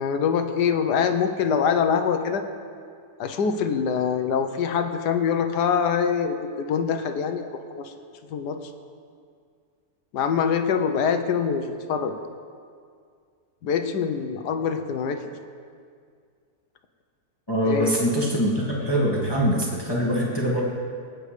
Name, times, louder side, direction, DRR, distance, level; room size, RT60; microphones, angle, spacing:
voice 1, 0.0-2.4 3.2-7.9 8.3-8.6 10.1-12.2 13.6-15.2 17.6-18.3, left 6 dB, 85° left, 7 dB, 1.4 m, -24 dB
voice 2, 17.5-20.6, equal, 15° left, -4 dB, 1.7 m, -23 dB
25.5 x 9.1 x 3.3 m, 2.2 s
omnidirectional pair, 1.7 m